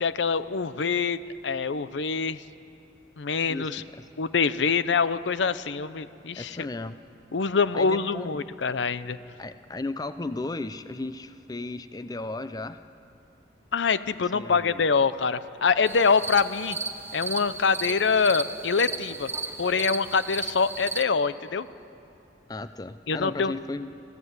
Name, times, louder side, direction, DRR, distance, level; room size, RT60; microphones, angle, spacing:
voice 1, 0.0-1.2 1.4-2.4 3.2-3.8 4.2-6.7 7.3-9.2 13.7-16.8 17.1-19.3 19.6-21.7 23.1-23.5, left 5 dB, 75° left, 14 dB, 0.6 m, -25 dB
voice 2, 3.5-4.1 6.4-7.0 7.7-8.4 9.4-12.8 14.3-14.8 22.5-24.0, left 2 dB, 20° left, 12 dB, 0.5 m, -35 dB
sound 1, 15.9-21.0, right 3 dB, 15° right, 0.8 m, -34 dB
25.5 x 15.5 x 8.1 m, 2.6 s
head